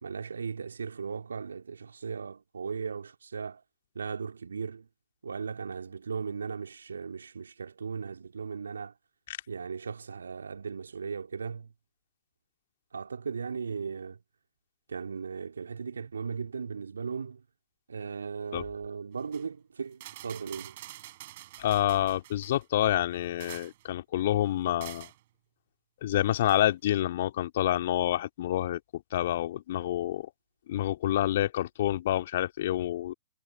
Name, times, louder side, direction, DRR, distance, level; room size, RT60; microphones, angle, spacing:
voice 1, 0.0-3.6 3.9-4.9 5.2-8.9 9.5-11.7 12.9-14.2 14.9-17.4 17.9-20.8, right 5 dB, 70° right, 2.3 m, -37 dB
sound 1, 19.2-19.5 19.9-22.6 23.1-23.9 24.8-25.2 26.4-26.6, right 15 dB, 45° right, 6.0 m, -47 dB
voice 2, 21.6-25.1 26.0-30.3 30.7-33.1, left 13 dB, 50° left, 2.3 m, -28 dB
figure-of-eight pair, 115°, 0 cm